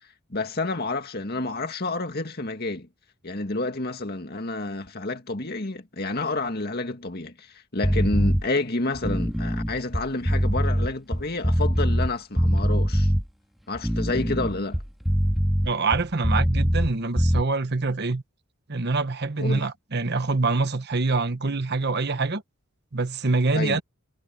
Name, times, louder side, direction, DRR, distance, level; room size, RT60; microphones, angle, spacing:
voice 1, 0.3-2.9 3.2-13.1 13.7-14.8 19.4-19.7 23.5-23.8, left 2 dB, 45° left, 2.2 m, -29 dB
sound 1, 7.8-8.4 8.9-12.1 12.4-13.2 13.7-16.9 17.2-17.4, equal, ahead, 2.1 m, -22 dB
voice 2, 15.6-18.2 18.7-22.4 22.9-23.8, right 3 dB, 50° right, 1.1 m, -25 dB
head